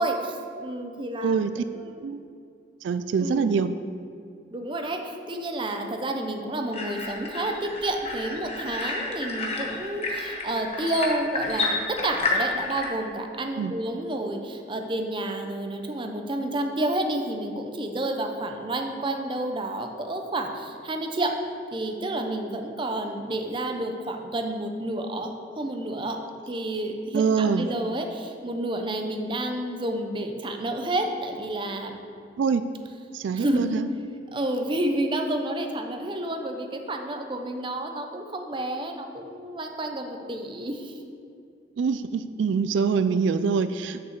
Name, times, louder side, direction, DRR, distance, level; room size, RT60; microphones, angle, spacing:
voice 1, 0.0-1.4 1.7-2.0 3.2-3.5 4.5-21.3 21.7-26.2 26.5-32.0 33.3-33.7 34.3-40.9, right 1 dB, 25° right, 4 dB, 0.7 m, -30 dB
voice 2, 1.2-1.5 2.0-2.2 2.8-3.7 13.6-13.7 27.1-27.7 32.4-32.6 33.1-33.9 41.8-44.0, right 5 dB, 90° right, 11 dB, 0.3 m, -24 dB
sound 1, 6.7-12.8, left 3 dB, 35° left, 1.0 m, -30 dB
6.7 x 5.6 x 6.5 m, 2.4 s
head